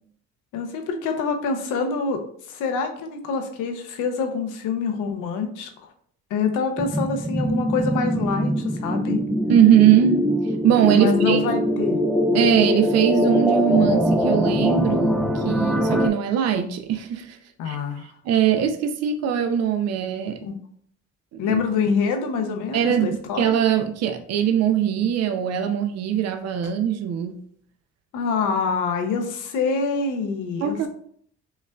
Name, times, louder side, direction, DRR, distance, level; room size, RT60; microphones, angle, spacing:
voice 1, 0.5-2.2 2.5-5.7 6.3-8.5 8.8-9.2 10.9-12.0 17.6-18.1 20.4-20.5 21.4-23.6 28.1-30.8, left 5 dB, 90° left, 5 dB, 0.6 m, -25 dB
sound 1, 6.8-16.1, equal, ahead, 0.4 m, -22 dB
voice 2, 9.5-10.3 10.6-11.4 12.3-17.4 17.7-17.8 18.2-20.4 21.5-21.6 22.7-27.4 30.6-30.9, right 9 dB, 60° right, 7 dB, 0.5 m, -21 dB
5.3 x 2.3 x 2.2 m, 0.62 s
cardioid pair, 90°, 30 cm